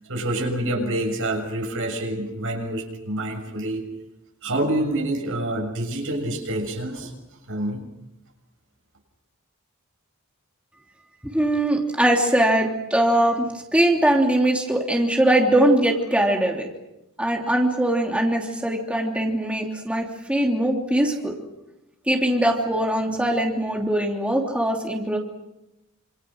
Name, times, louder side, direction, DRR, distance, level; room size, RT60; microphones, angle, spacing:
voice 1, 0.1-3.8 4.4-7.1 7.5-7.8, right 1 dB, 65° right, 3 dB, 6.9 m, -27 dB
voice 2, 11.3-13.4 13.7-16.7 17.2-21.3 22.1-25.2, right 1 dB, 5° right, 0 dB, 3.1 m, -21 dB
27.5 x 27.5 x 6.5 m, 0.94 s
head